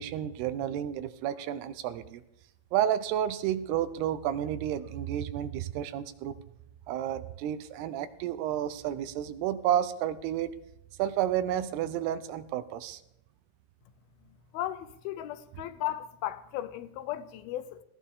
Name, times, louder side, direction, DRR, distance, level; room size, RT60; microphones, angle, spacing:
voice 1, 0.0-2.2 2.7-6.3 6.9-10.5 11.0-13.0, right 11 dB, 90° right, 2.9 m, -31 dB
voice 2, 14.5-17.8, left 13 dB, 80° left, 2.5 m, -36 dB
19.0 x 17.5 x 3.7 m
omnidirectional pair, 4.5 m